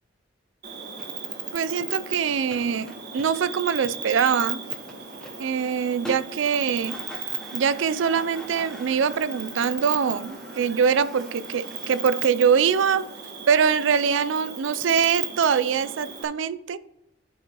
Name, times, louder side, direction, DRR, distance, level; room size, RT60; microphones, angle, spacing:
Cricket, 0.6-16.2, right 7 dB, 60° right, 1.3 m, -36 dB
sound 1, 0.9-12.0, equal, 5° left, 0.8 m, -45 dB
voice 1, 1.5-4.6 5.4-7.0 7.5-13.1 13.5-16.8, right 7 dB, 85° right, 0.4 m, -23 dB
13.0 x 4.7 x 2.9 m
head